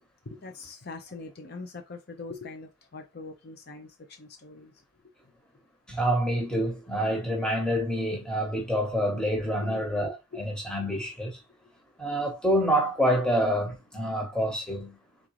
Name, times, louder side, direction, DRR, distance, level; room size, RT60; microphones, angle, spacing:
voice 1, 0.3-4.7 9.7-9.8 10.3-10.4, left 3 dB, 50° left, 0.6 m, -42 dB
voice 2, 5.9-11.4 12.0-15.0, equal, 5° left, 1.1 m, -27 dB
3.7 x 3.7 x 3.1 m
head